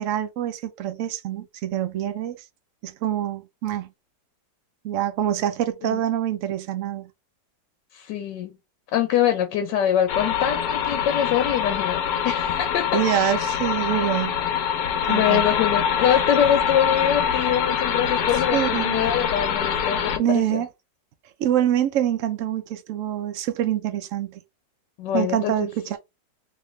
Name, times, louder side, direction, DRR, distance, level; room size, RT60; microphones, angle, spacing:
voice 1, 0.0-2.4 2.8-3.9 4.8-7.1 12.9-14.4 15.1-15.4 18.5-19.0 20.2-20.7 21.4-24.4 25.1-26.0, right 10 dB, 70° right, 0.7 m, -25 dB
voice 2, 7.9-8.6 8.9-13.4 15.1-20.6 25.0-25.7, left 10 dB, 80° left, 1.3 m, -24 dB
sound 1, 10.1-20.2, left 7 dB, 65° left, 1.0 m, -24 dB
3.1 x 2.8 x 3.1 m
omnidirectional pair, 1.9 m